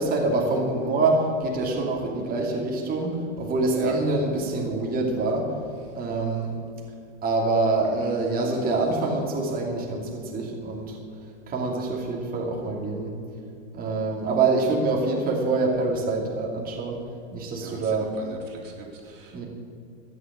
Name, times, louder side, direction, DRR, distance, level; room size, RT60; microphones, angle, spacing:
voice 1, 0.0-5.5 5.9-6.5 7.2-11.0 11.5-13.1 13.7-17.0 17.3-18.1 19.3-19.4, right 3 dB, 25° right, -2 dB, 2.8 m, -25 dB
voice 2, 17.6-19.4, right 4 dB, 80° right, -1 dB, 3.7 m, -41 dB
13.5 x 11.0 x 7.5 m, 2.4 s
hypercardioid pair, 135°, 37 cm